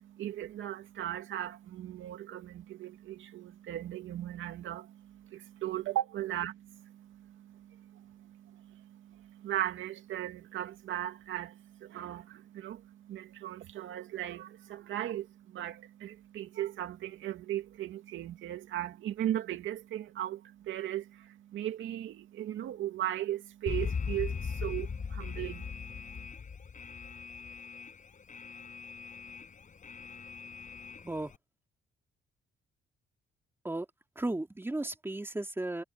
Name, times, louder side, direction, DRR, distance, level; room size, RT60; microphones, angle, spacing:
voice 1, 0.0-26.3, right 12 dB, 75° right, 2.3 m, -38 dB
Alarm, 23.7-31.4, left 6 dB, 40° left, 5.2 m, -39 dB
voice 2, 31.0-31.3 33.6-33.9 34.2-35.8, right 2 dB, 10° right, 2.9 m, -35 dB
cardioid pair, 90°, 20 cm